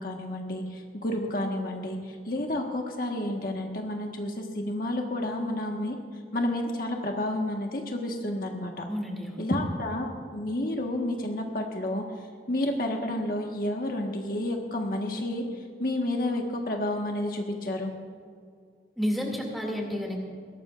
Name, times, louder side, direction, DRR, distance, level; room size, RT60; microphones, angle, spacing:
voice 1, 0.0-6.0 6.3-8.8 9.4-12.0 12.5-15.4 15.8-17.9, left 1 dB, 50° left, 1 dB, 1.5 m, -30 dB
voice 2, 8.9-9.4 19.0-20.3, equal, ahead, 0 dB, 2.4 m, -31 dB
21.5 x 18.0 x 2.5 m, 2.2 s
head